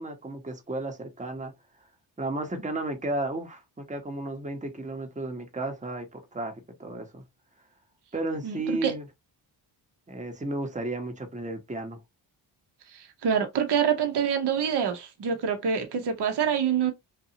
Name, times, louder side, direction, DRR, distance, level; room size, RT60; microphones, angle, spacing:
voice 1, 0.0-1.5 2.2-7.2 8.1-9.1 10.1-12.0, right 2 dB, 15° right, 0.9 m, -33 dB
voice 2, 8.4-8.9 12.9-16.9, right 7 dB, 55° right, 0.9 m, -26 dB
2.8 x 2.2 x 2.7 m
cardioid pair, 55°, 48 cm